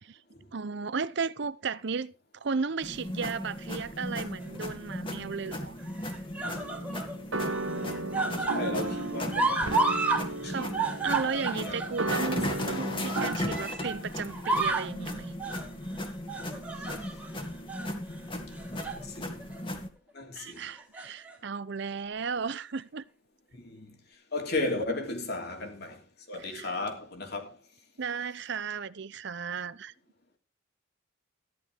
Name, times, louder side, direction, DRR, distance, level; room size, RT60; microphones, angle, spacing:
voice 1, 0.5-5.8 10.4-10.8 11.0-15.3 20.3-23.0 26.5-26.7 28.0-29.9, right 5 dB, 55° right, 0.6 m, -34 dB
sound 1, 2.8-19.9, left 1 dB, 25° left, 2.1 m, -37 dB
sound 2, 4.4-5.0 5.9-7.1 7.5-10.2 10.5-14.0 14.3-14.9 15.4-15.7 16.3-17.3 17.7-17.9 18.5-19.0 19.4-19.6 20.7-21.3 22.2-22.3, right 3 dB, 10° right, 2.7 m, -32 dB
sound 3, 6.5-13.3, right 2 dB, 75° right, 1.2 m, -35 dB
voice 2, 8.4-10.9 11.3-11.8 18.6-19.4 20.1-20.6 23.6-23.9 24.3-26.0 26.3-27.6, left 2 dB, 50° left, 3.1 m, -35 dB
14.5 x 11.0 x 3.5 m
head